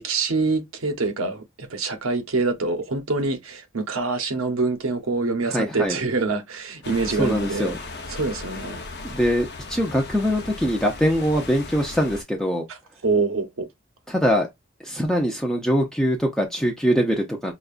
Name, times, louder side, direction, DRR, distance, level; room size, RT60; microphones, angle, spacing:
voice 1, 0.0-7.7 8.1-8.8 12.7-12.8 13.0-13.7, right 3 dB, 85° right, 0.8 m, -25 dB
voice 2, 5.5-6.0 7.2-7.8 9.0-12.7 14.1-14.5 14.8-17.5, equal, 5° left, 0.5 m, -23 dB
sound 1, 6.8-12.2, left 3 dB, 55° left, 0.7 m, -37 dB
5.0 x 2.3 x 2.4 m
head